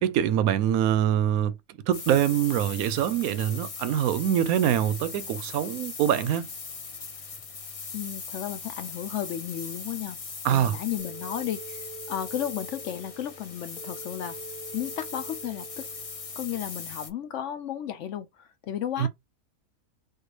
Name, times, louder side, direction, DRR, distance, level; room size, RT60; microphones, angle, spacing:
voice 1, 0.0-1.5 1.9-6.5 10.4-10.8 19.0-19.1, right 10 dB, 85° right, 1.0 m, -24 dB
sound 1, 1.9-17.1, left 5 dB, 40° left, 0.5 m, -40 dB
voice 2, 7.9-10.2 10.5-14.4 14.7-15.9 16.4-19.1, left 10 dB, 70° left, 0.8 m, -34 dB
sound 2, 11.0-16.6, right 4 dB, 5° left, 1.1 m, -45 dB
4.4 x 2.4 x 3.1 m
omnidirectional pair, 1.5 m